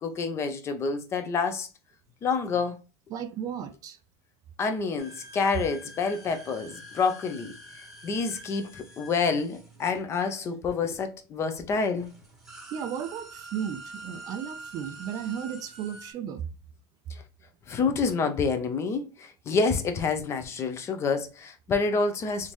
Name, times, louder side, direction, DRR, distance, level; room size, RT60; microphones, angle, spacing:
voice 1, 0.0-1.7 2.2-2.8 4.6-7.5 8.0-12.1 17.1-17.2 17.7-22.5, left 4 dB, 25° left, 0.6 m, -28 dB
voice 2, 3.1-4.0 12.7-16.5, right 8 dB, 40° right, 0.4 m, -34 dB
sound 1, 5.0-10.7 11.5-11.6 11.9-16.1, right 2 dB, 5° right, 1.0 m, -46 dB
3.5 x 2.6 x 3.0 m
supercardioid pair, 140°, 10 cm